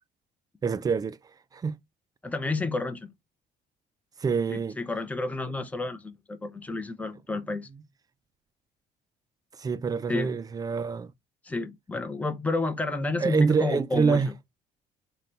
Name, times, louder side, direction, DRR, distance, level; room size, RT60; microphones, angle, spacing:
voice 1, 0.6-1.2 1.5-1.8 4.2-4.8 9.6-11.1 13.2-14.3, right 5 dB, 20° right, 0.3 m, -26 dB
voice 2, 2.2-3.1 4.5-7.7 10.1-10.3 11.4-14.2, left 3 dB, 10° left, 0.6 m, -30 dB
3.8 x 2.2 x 4.2 m
cardioid pair, 110°, 17 cm